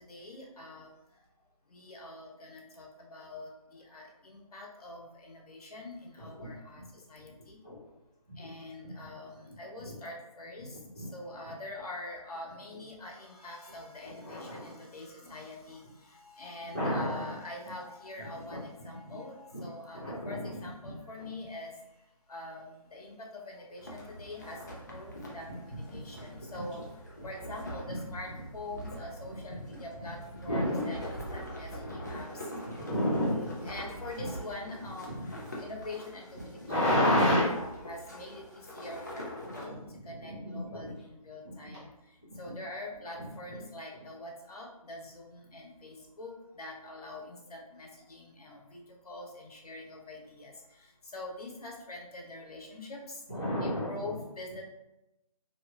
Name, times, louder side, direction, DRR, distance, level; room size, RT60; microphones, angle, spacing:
voice 1, 0.1-0.9 1.7-2.9 3.1-6.8 7.1-7.6 8.4-10.7 11.1-15.8 16.4-20.0 20.3-21.7 22.3-23.1 23.5-26.8 27.2-28.3 28.5-30.2 30.4-32.8 33.6-35.1 35.6-36.6 37.0-37.5 37.8-38.4 38.7-39.2 39.6-39.7 40.1-41.9 42.4-46.3 46.6-48.8 49.0-50.5 51.1-53.0 53.6-54.6, left 2 dB, 80° left, -1 dB, 0.9 m, -44 dB
voice 2, 6.2-6.5 6.7-6.8 7.6-7.8 8.3-8.4 8.8-8.9 9.8-9.9 10.9-11.1 14.0-14.8 16.7-17.3 18.2-18.6 19.0-19.2 19.5-19.6 19.9-20.6 20.8-20.9 25.1-25.2 25.7-25.8 26.2-26.3 26.5-26.6 27.8-27.9 29.5-29.7 30.5-30.9 31.8-31.9 32.7-33.7 34.2-34.3 35.1-35.4 36.6-37.5 39.4-40.8 41.4-41.5 42.4-42.5 53.3-54.2, left 1 dB, 10° right, -13 dB, 0.6 m, -31 dB
sound 1, 23.8-39.7, equal, 30° left, 0.4 m, -44 dB
2.9 x 2.7 x 2.3 m, 0.94 s
hypercardioid pair, 175°, 19 cm